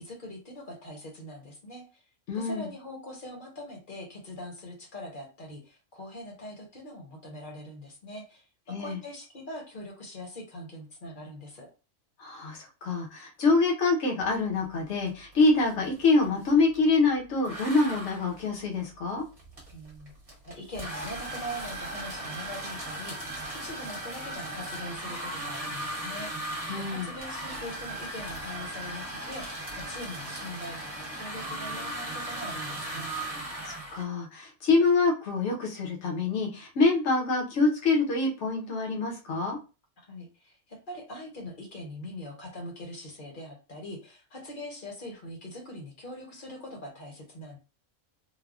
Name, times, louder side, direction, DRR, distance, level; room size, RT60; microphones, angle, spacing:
voice 1, 0.0-2.0 2.3-11.7 19.7-20.1 20.4-33.1 40.1-47.6, left 1 dB, 45° left, 0 dB, 1.0 m, -42 dB
voice 2, 2.3-2.7 8.7-9.0 12.2-19.2 26.7-27.1 33.4-39.6, left 3 dB, 65° left, 0 dB, 1.2 m, -26 dB
sound 1, 15.1-15.3 15.6-16.9 17.4-34.0, right 1 dB, 30° right, 1.0 m, -37 dB
3.3 x 2.2 x 2.4 m, 0.32 s
omnidirectional pair, 1.3 m